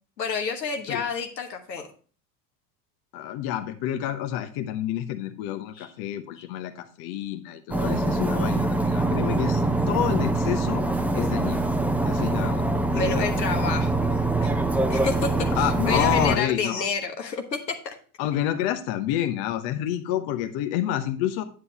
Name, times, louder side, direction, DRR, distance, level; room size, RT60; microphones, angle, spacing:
voice 1, 0.2-1.9 5.7-5.9 6.4-6.5 12.9-14.1 14.4-14.5 14.9-18.0, left 5 dB, 85° left, 4 dB, 1.3 m, -29 dB
voice 2, 3.1-10.8 11.1-11.7 12.1-12.6 13.0-13.3 15.6-16.9 18.2-21.4, left 11 dB, 50° left, 8 dB, 1.0 m, -28 dB
sound 1, 7.7-16.4, right 2 dB, 5° right, 0.7 m, -24 dB
9.4 x 7.9 x 2.9 m, 0.39 s
figure-of-eight pair, 70°, 49 cm